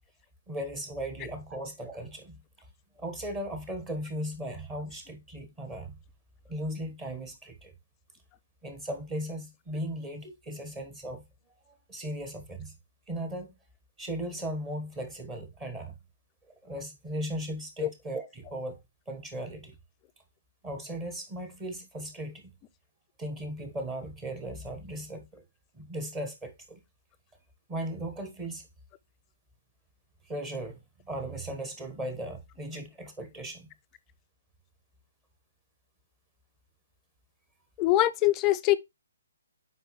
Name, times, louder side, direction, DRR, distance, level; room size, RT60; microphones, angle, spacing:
voice 1, 0.5-2.4 3.0-5.9 6.5-7.7 8.6-11.2 11.7-12.7 13.1-13.5 14.0-15.9 16.6-18.8 19.1-19.7 20.6-22.5 23.2-25.4 25.7-26.8 27.7-28.7 30.3-30.8 31.0-33.7, right 1 dB, 15° right, 1.2 m, -37 dB
voice 2, 37.8-38.8, left 15 dB, 20° left, 0.4 m, -23 dB
8.0 x 5.1 x 3.1 m
hypercardioid pair, 155°, 0 cm